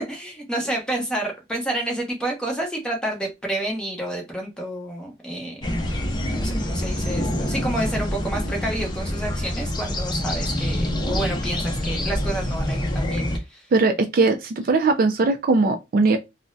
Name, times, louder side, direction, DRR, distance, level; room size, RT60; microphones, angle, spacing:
voice 1, 0.0-6.0 6.3-13.7, right 1 dB, 5° left, 0.8 m, -29 dB
sound 1, 5.6-13.4, left 1 dB, 25° left, 0.5 m, -26 dB
voice 2, 13.7-16.2, right 3 dB, 50° right, 0.4 m, -19 dB
3.5 x 2.1 x 2.6 m
head